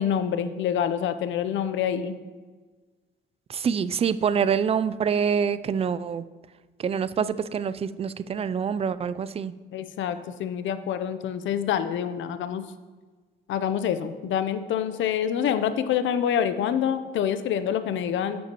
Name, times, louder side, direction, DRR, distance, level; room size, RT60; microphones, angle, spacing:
voice 1, 0.0-2.1 9.7-12.7 13.5-18.4, left 9 dB, 75° left, 11 dB, 0.6 m, -26 dB
voice 2, 3.5-6.2 6.8-9.5, right 7 dB, 30° right, 15 dB, 0.3 m, -26 dB
10.0 x 7.6 x 3.0 m, 1.4 s
cardioid pair, 90°, 20 cm